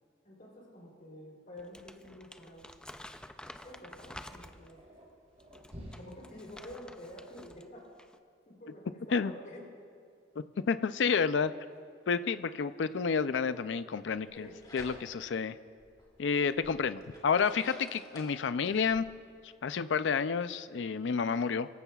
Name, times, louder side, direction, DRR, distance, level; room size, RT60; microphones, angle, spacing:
voice 1, 0.2-2.7 3.6-4.8 6.0-7.9 8.4-9.6 14.3-14.6, left 1 dB, 50° left, -2 dB, 3.4 m, -49 dB
Crumpling crinkling, 1.6-4.8 5.4-7.7 8.0-8.2, left 1 dB, 5° left, 0.4 m, -50 dB
sound 1, 1.7-7.6, equal, 40° right, 3.1 m, -53 dB
voice 2, 10.4-11.5 12.1-14.5 14.7-15.6 16.2-19.0 19.6-21.7, left 5 dB, 85° left, 13 dB, 0.4 m, -30 dB
sound 2, 14.3-15.3 15.8-19.0, left 1 dB, 25° left, 2.6 m, -52 dB
23.5 x 15.0 x 2.4 m, 2.3 s
head